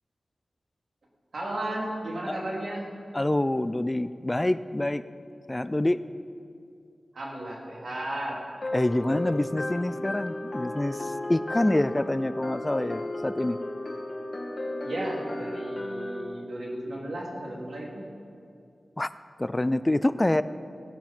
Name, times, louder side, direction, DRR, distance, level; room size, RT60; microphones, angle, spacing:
voice 1, 1.3-2.9 7.1-8.4 8.8-9.3 14.8-18.0, right 1 dB, 80° right, -3 dB, 3.0 m, -34 dB
voice 2, 3.1-5.0 5.5-6.0 8.7-13.6 19.0-19.1 19.4-20.4, left 1 dB, 25° left, 14 dB, 0.4 m, -26 dB
sound 1, 8.6-16.2, left 1 dB, 40° left, 2.2 m, -34 dB
18.0 x 10.5 x 4.5 m, 2.4 s
cardioid pair, 50°, 0 cm